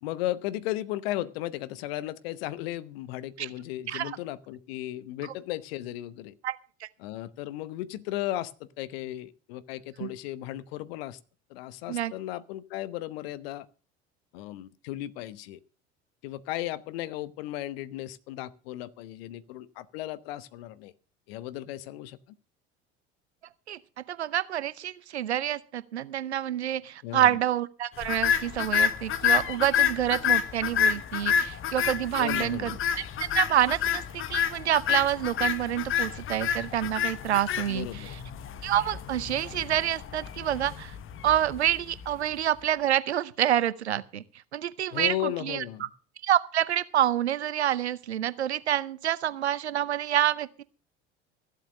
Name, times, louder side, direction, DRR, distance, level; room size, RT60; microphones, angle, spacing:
voice 1, 0.0-6.3 7.0-11.2 11.5-13.7 14.3-15.6 16.2-20.9 21.3-22.2 27.0-27.4 32.2-32.8 37.7-38.2 44.9-45.9, left 14 dB, 65° left, 1.0 m, -35 dB
voice 2, 24.1-32.8 33.3-38.0 38.6-40.9 41.2-44.2 44.5-45.6 46.2-50.6, right 11 dB, 80° right, 0.8 m, -27 dB
sound 1, 28.0-42.3, left 8 dB, 40° left, 1.2 m, -29 dB
14.5 x 7.9 x 6.4 m
figure-of-eight pair, 65°, 33 cm